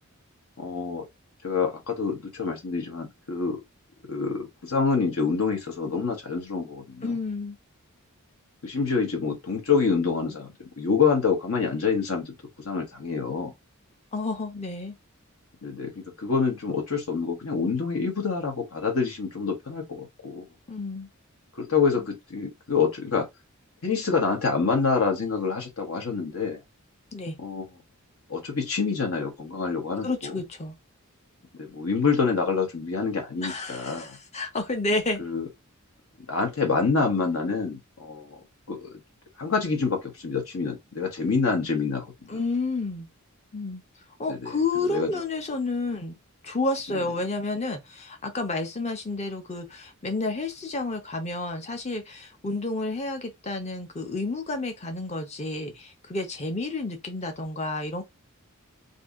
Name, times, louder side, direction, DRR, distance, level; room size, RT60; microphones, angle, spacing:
voice 1, 0.6-1.1 1.4-3.6 4.1-7.1 8.6-10.5 10.8-12.3 12.6-13.5 15.6-20.4 21.5-23.3 23.8-26.6 27.4-27.7 28.3-30.4 31.6-34.2 35.2-35.5 36.3-38.4 38.7-39.0 39.4-42.3 44.3-44.6 44.9-45.1, left 5 dB, 70° left, 0.9 m, -27 dB
voice 2, 7.0-7.6 14.1-14.9 20.7-21.1 27.1-27.4 30.0-30.7 33.4-35.3 42.3-43.1 43.5-43.8 44.2-46.2 46.4-58.0, left 3 dB, 30° left, 0.7 m, -30 dB
2.7 x 2.6 x 3.5 m
head